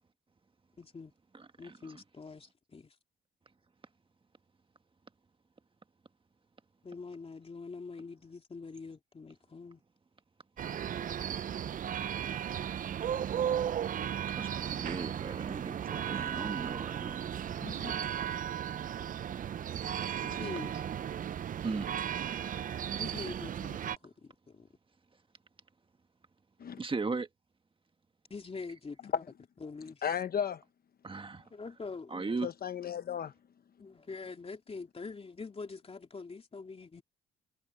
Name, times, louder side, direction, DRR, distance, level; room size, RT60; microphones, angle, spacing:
voice 1, 0.8-1.1 1.6-2.9 6.8-9.8 17.6-17.9 20.2-20.7 23.0-24.7 28.3-29.2 29.6-30.0 31.5-32.3 33.8-37.0, left 4 dB, 30° left, 2.8 m, -44 dB
voice 2, 1.3-1.9 14.3-17.2 21.6-21.9 26.8-27.3 31.0-31.4 32.1-32.5, right 4 dB, 25° right, 1.7 m, -37 dB
sound 1, 10.6-24.0, right 9 dB, 45° right, 0.5 m, -35 dB
voice 3, 30.0-30.6 32.4-33.3, left 8 dB, 50° left, 1.0 m, -34 dB
cardioid pair, 90°, 20 cm